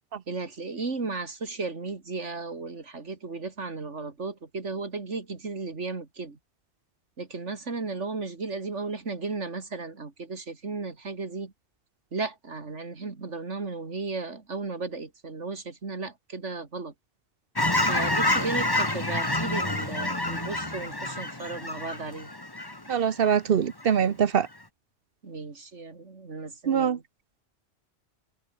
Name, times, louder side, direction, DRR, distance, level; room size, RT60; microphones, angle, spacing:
voice 1, 0.3-6.4 7.2-11.5 12.1-16.9 17.9-22.3 25.2-27.0, right 3 dB, 75° right, 2.9 m, -35 dB
Fowl / Chirp tweet, 17.6-23.4 23.8-24.0, left 1 dB, 20° left, 2.3 m, -28 dB
voice 2, 22.9-24.5 26.7-27.0, right 8 dB, 55° right, 1.0 m, -23 dB
omnidirectional pair, 1.2 m